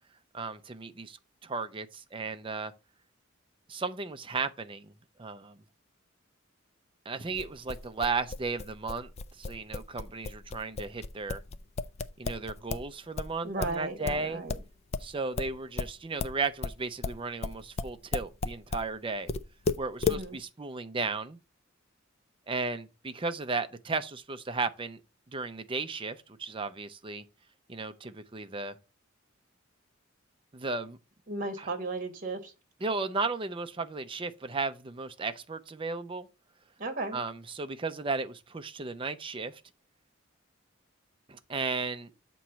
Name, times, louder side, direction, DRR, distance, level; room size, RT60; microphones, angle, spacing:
voice 1, 0.3-1.2 1.4-2.7 3.7-4.9 5.2-5.6 7.1-9.1 9.4-11.4 12.2-14.4 15.0-19.3 19.8-21.4 22.5-25.0 25.3-27.2 27.7-28.8 30.5-31.0 31.6-31.7 32.8-36.3 37.1-39.6 41.3-42.1, right 4 dB, 25° right, 0.5 m, -35 dB
sound 1, 7.3-12.9 13.2-18.9 19.3-20.2, left 4 dB, 30° left, 0.4 m, -34 dB
voice 2, 13.4-14.6 20.0-20.4 31.3-32.5 36.8-37.2, right 2 dB, 40° right, 1.1 m, -35 dB
7.4 x 3.1 x 5.5 m
head